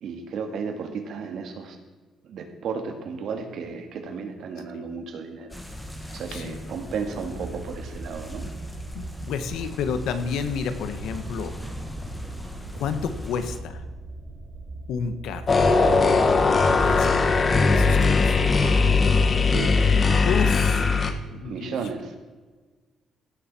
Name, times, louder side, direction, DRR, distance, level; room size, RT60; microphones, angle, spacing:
voice 1, 0.0-1.8 2.2-5.6 6.1-8.5 19.5-19.9 21.4-22.1, right 5 dB, 65° right, 5 dB, 2.1 m, -34 dB
sound 1, 5.5-13.6, left 1 dB, 5° left, 1.7 m, -39 dB
voice 2, 6.1-6.6 8.9-11.6 12.7-13.8 14.9-15.5 16.7-18.6 19.0-19.4 20.2-21.9, left 6 dB, 85° left, 10 dB, 1.3 m, -31 dB
sound 2, 7.2-16.9, right 2 dB, 50° right, 3.0 m, -40 dB
sound 3, 15.5-21.1, left 4 dB, 30° left, 1.2 m, -19 dB
16.5 x 7.3 x 6.1 m, 1.3 s
cardioid pair, 130°, 0 cm